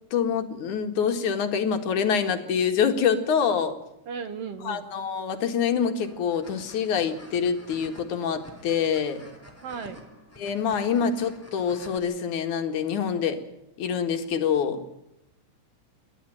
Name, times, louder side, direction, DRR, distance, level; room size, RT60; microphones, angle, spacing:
voice 1, 0.1-3.8 4.6-9.2 10.4-13.4 13.8-14.8, left 7 dB, 75° left, 7 dB, 3.3 m, -26 dB
voice 2, 4.1-4.9 9.6-10.0, right 6 dB, 60° right, 11 dB, 2.0 m, -35 dB
sound 1, 6.0-12.0, equal, 5° left, 3.7 m, -49 dB
29.0 x 12.0 x 8.8 m, 0.87 s
omnidirectional pair, 3.5 m